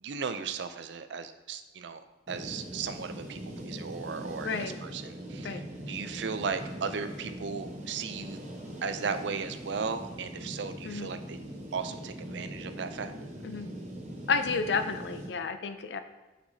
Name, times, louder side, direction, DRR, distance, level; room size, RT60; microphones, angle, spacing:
voice 1, 0.0-8.4 8.8-11.4 11.7-13.1, right 5 dB, 70° right, 9 dB, 0.4 m, -36 dB
sound 1, 2.3-15.3, equal, 40° right, 1.0 m, -41 dB
voice 2, 4.4-4.8 5.4-5.6 10.8-11.1 13.4-13.7 14.3-16.0, left 5 dB, 65° left, 10 dB, 0.4 m, -31 dB
5.8 x 5.8 x 2.7 m, 1.2 s
head